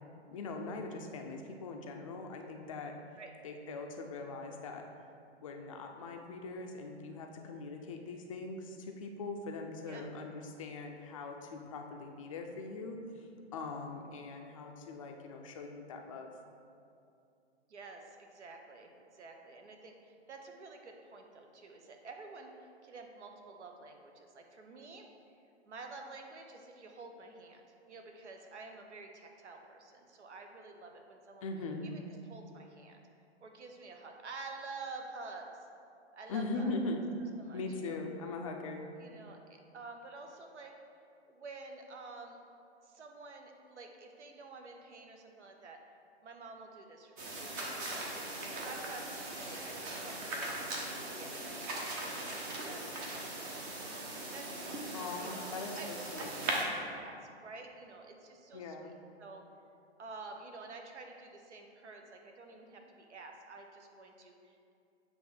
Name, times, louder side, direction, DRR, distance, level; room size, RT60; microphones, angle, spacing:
voice 1, 0.1-2.9 3.4-4.8 5.4-13.0 13.5-16.3 31.4-31.9 36.3-37.0 37.5-38.8 54.9-56.4 58.5-58.9, left 3 dB, 30° left, 2 dB, 0.4 m, -41 dB
voice 2, 17.7-25.1 25.6-31.5 31.8-33.0 33.4-35.5 36.1-36.7 37.4-38.0 39.0-40.7 41.3-42.4 42.8-45.8 46.2-53.8 54.3-54.9 55.2-55.9 56.2-58.9 59.2-59.4 60.0-64.7, right 3 dB, 80° right, 3 dB, 1.0 m, -50 dB
sound 1, 47.2-56.6, right 1 dB, 20° right, 0.5 m, -39 dB
7.9 x 3.1 x 5.0 m, 2.5 s
hypercardioid pair, 140°, 34 cm